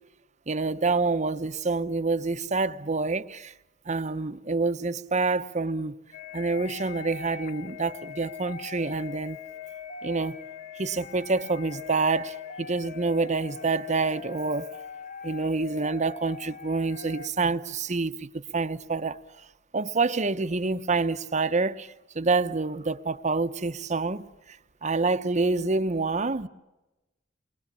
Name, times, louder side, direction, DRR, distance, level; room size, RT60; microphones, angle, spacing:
voice 1, 0.5-3.5 3.9-5.9 6.3-9.4 10.0-10.4 10.8-14.7 15.2-19.2 19.7-26.5, right 3 dB, 40° right, 0.9 m, -27 dB
sound 1, 6.1-17.3, left 6 dB, 40° left, 1.0 m, -41 dB
29.0 x 22.0 x 8.6 m
head